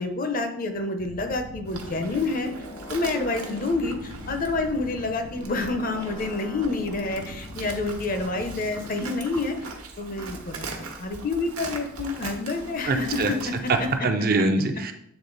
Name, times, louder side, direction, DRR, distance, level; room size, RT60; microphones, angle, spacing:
voice 1, 0.0-2.5 2.9-9.7 10.0-13.2 13.4-13.9, left 3 dB, 40° left, 6 dB, 0.7 m, -28 dB
sound 1, 1.0-9.2, left 2 dB, 65° left, 1.0 m, -41 dB
Livestock farm animals working animals, 1.6-14.0, right 3 dB, 80° right, 1.1 m, -40 dB
voice 2, 12.9-13.3 13.7-14.9, right 3 dB, 40° right, 6 dB, 0.5 m, -23 dB
8.0 x 3.7 x 3.9 m, 0.75 s
head